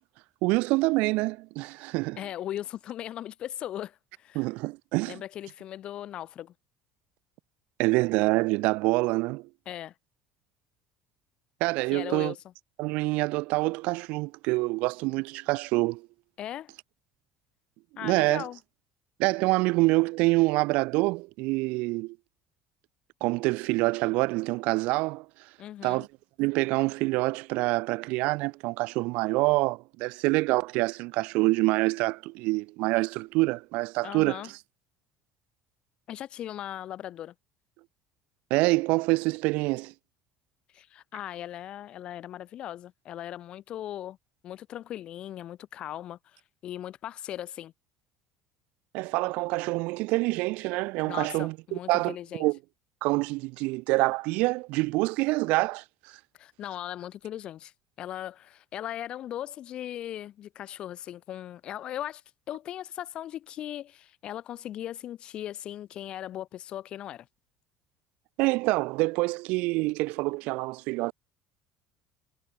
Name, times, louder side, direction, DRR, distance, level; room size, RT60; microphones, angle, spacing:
voice 1, 0.4-2.2 4.3-5.2 7.8-9.5 11.6-12.3 12.8-16.1 18.0-18.4 19.2-22.2 23.2-25.2 25.8-26.1 26.4-34.4 38.5-39.9 48.9-52.6 53.0-55.8 68.4-71.1, right 23 dB, 60° right, 1.4 m, -26 dB
voice 2, 2.2-4.4 5.1-6.5 9.7-9.9 11.9-12.4 16.4-16.7 18.0-18.6 25.6-26.1 34.0-34.5 36.1-37.3 40.7-44.2 44.4-47.7 51.0-52.5 56.3-67.3, left 12 dB, 35° left, 2.1 m, -38 dB
cardioid pair, 170°, 3 cm